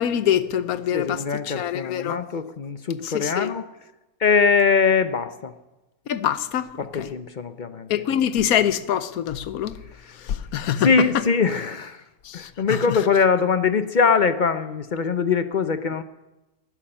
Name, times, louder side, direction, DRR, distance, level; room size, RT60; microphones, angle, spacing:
voice 1, 0.0-2.2 3.0-3.5 6.1-6.7 7.0-7.1 7.9-9.7 10.5-10.9 11.1-11.2 12.3-13.0, left 10 dB, 75° left, 1.2 m, -24 dB
voice 2, 0.9-3.7 4.2-5.5 6.8-7.9 10.8-12.0 12.3-16.0, left 5 dB, 50° left, 0.6 m, -22 dB
13.0 x 11.0 x 10.0 m
omnidirectional pair, 1.6 m